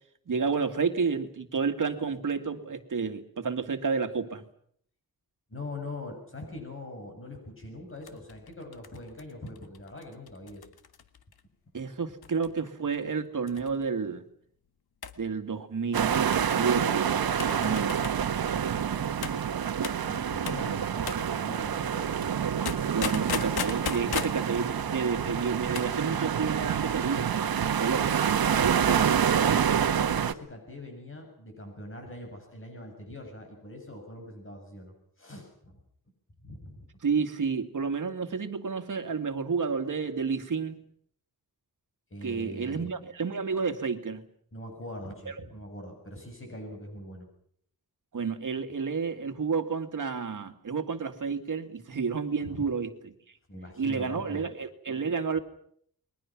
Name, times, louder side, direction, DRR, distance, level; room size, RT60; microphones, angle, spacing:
voice 1, 0.3-4.4 11.7-14.2 15.2-17.1 17.4-18.0 22.9-29.2 37.0-40.8 42.2-44.3 45.3-45.4 48.1-53.1 53.8-55.4, right 5 dB, 55° right, 7 dB, 2.2 m, -30 dB
voice 2, 5.5-10.7 20.0-22.4 24.0-24.1 25.6-25.8 29.4-35.8 36.4-36.9 42.1-42.9 44.5-47.3 52.4-52.7 53.5-54.5, left 1 dB, 35° left, 3 dB, 7.3 m, -42 dB
sound 1, 8.0-11.4 12.2-12.7 12.9-13.0 13.5-13.9 15.0-15.2 16.0-16.6 17.4-18.2 19.2-19.4 19.8-20.1 20.5-20.7 21.1-21.3 22.7-24.4 25.6-25.9 26.2-26.3, left 7 dB, 90° left, 1.6 m, -37 dB
sound 2, 15.9-30.3, right 8 dB, 75° right, 1.3 m, -27 dB
29.5 x 22.0 x 6.1 m, 0.66 s
wide cardioid pair, 115°, 36 cm